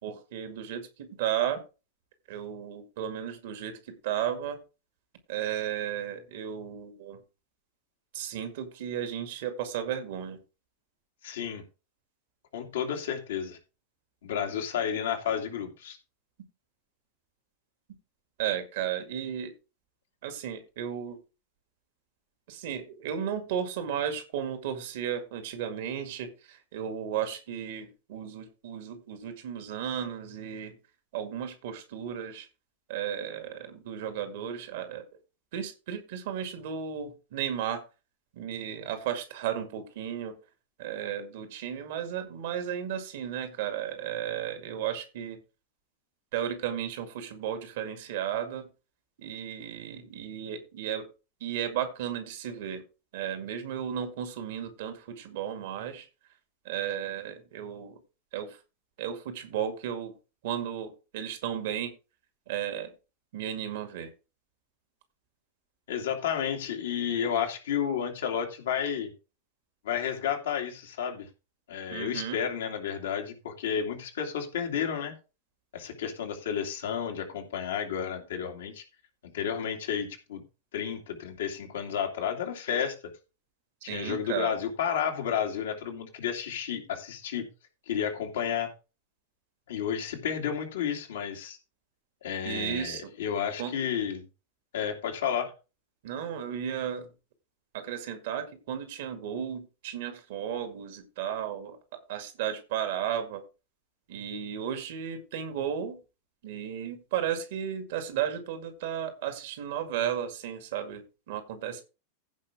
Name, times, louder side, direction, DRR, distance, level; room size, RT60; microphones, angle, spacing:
voice 1, 0.0-1.6 2.3-4.6 5.3-7.2 8.1-10.4 18.4-19.5 20.2-21.2 22.5-30.8 31.1-32.5 32.9-35.0 35.5-37.8 38.3-40.4 40.8-45.4 46.3-48.7 49.2-51.1 51.4-52.8 53.1-56.1 56.6-58.0 58.3-58.6 59.0-60.1 60.4-61.9 62.5-62.9 63.3-64.1 71.9-72.4 83.8-84.6 92.4-93.1 93.6-93.7 96.0-97.1 97.7-101.8 102.1-103.4 104.1-106.0 106.4-111.8, right 9 dB, 55° right, 7 dB, 2.1 m, -34 dB
voice 2, 11.2-11.6 12.5-13.6 14.2-16.0 65.9-69.1 69.8-71.3 71.7-75.1 75.7-78.8 79.3-80.4 80.7-82.9 83.8-87.5 87.9-88.7 89.7-91.6 92.2-94.2 94.7-95.5, left 8 dB, 60° left, 3 dB, 2.5 m, -31 dB
15.5 x 5.5 x 3.5 m, 0.31 s
figure-of-eight pair, 90°, 0 cm